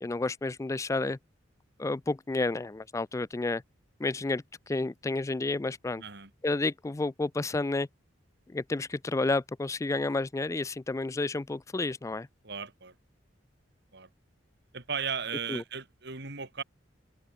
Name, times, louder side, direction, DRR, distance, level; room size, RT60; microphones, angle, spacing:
voice 1, 0.0-1.2 1.8-3.6 4.0-6.0 6.4-7.9 8.5-12.3 15.5-15.6, left 2 dB, 15° left, 0.3 m, -30 dB
voice 2, 6.0-6.3 12.4-12.9 13.9-14.1 14.7-16.6, right 6 dB, 60° right, 4.0 m, -36 dB
head